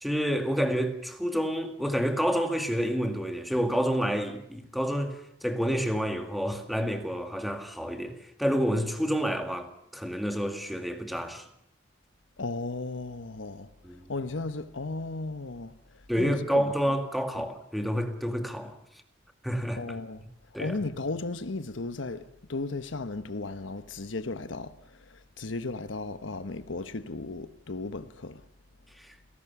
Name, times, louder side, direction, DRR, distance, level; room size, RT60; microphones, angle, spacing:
voice 1, 0.0-11.4 13.8-14.0 16.1-18.8 19.4-19.8 20.5-20.8 29.0-29.1, equal, ahead, 2.0 m, -29 dB
voice 2, 12.4-16.7 17.4-17.5 19.8-20.3 20.6-28.4, left 3 dB, 90° left, 1.1 m, -35 dB
28.5 x 17.5 x 7.1 m
head